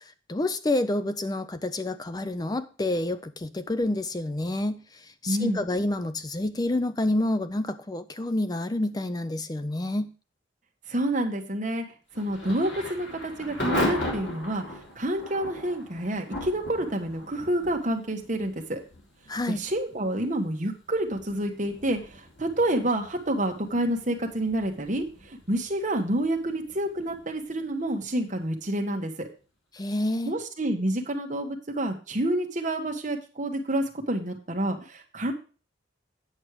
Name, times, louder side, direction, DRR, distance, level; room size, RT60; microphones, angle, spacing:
voice 1, 0.3-10.1 19.3-19.6 29.7-30.3, left 1 dB, 20° left, 12 dB, 0.5 m, -28 dB
voice 2, 5.3-5.6 10.9-11.8 12.2-14.6 14.9-18.8 19.5-29.3 30.3-35.3, right 1 dB, 40° right, 3 dB, 1.4 m, -28 dB
Thunder / Rain, 12.1-28.8, left 1 dB, 65° left, 3.3 m, -38 dB
8.9 x 6.4 x 4.8 m, 0.35 s
head